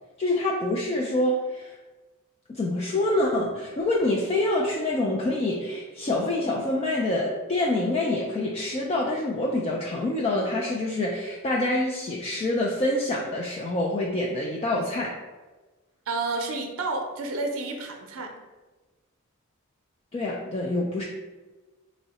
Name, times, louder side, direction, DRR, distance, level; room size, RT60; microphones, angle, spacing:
voice 1, 0.2-1.8 2.5-15.2 20.1-21.0, left 1 dB, 25° left, -2 dB, 0.3 m, -26 dB
voice 2, 16.1-18.3, right 3 dB, 65° right, 3 dB, 0.5 m, -30 dB
3.6 x 2.1 x 4.0 m, 1.2 s
head